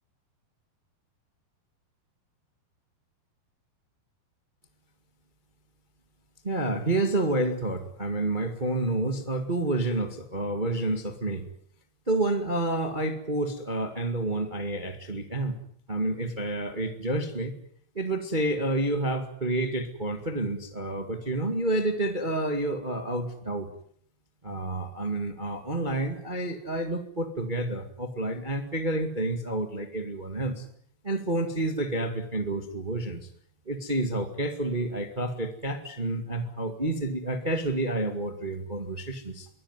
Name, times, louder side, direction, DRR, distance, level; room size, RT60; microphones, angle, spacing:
voice 1, 6.4-11.5 12.1-15.6 15.9-17.5 17.9-23.7 24.4-30.7 31.0-33.3 33.6-39.5, right 2 dB, 45° right, 6 dB, 0.6 m, -29 dB
23.5 x 18.5 x 9.6 m, 0.65 s
omnidirectional pair, 4.9 m